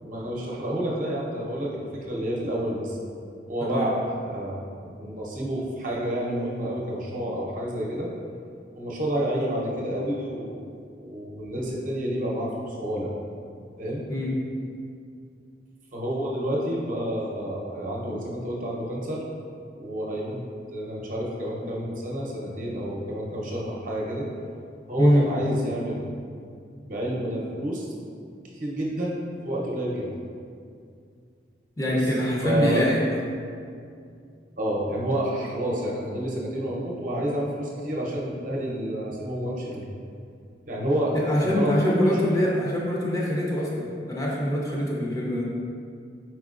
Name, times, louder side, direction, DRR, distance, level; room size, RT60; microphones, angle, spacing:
voice 1, 0.0-3.0 3.5-8.1 8.7-10.6 10.9-13.1 13.8-14.0 15.9-19.2 19.8-20.4 20.7-24.3 24.9-26.0 26.8-27.9 28.5-29.2 29.4-30.1 31.9-32.0 32.4-32.8 34.6-39.9 40.7-42.1, right 1 dB, 45° right, -4 dB, 0.7 m, -29 dB
voice 2, 31.8-33.0 41.1-45.5, left 1 dB, 20° left, -4 dB, 0.5 m, -24 dB
4.6 x 4.2 x 2.5 m, 2.3 s
head